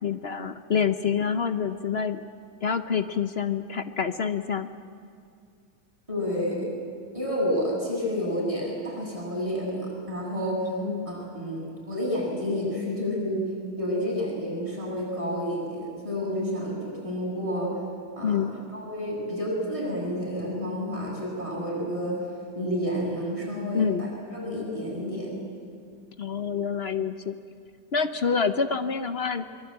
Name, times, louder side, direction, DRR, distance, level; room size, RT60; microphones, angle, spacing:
voice 1, 0.0-2.2 2.6-4.7 10.8-11.1 18.2-18.6 23.7-24.1 26.2-27.4 27.9-29.4, left 6 dB, 50° left, 9 dB, 0.7 m, -27 dB
voice 2, 6.1-6.7 7.1-10.8 11.0-17.8 18.2-22.2 22.5-25.3, equal, 15° right, -4 dB, 7.7 m, -30 dB
23.5 x 22.5 x 8.8 m, 2.3 s
omnidirectional pair, 1.9 m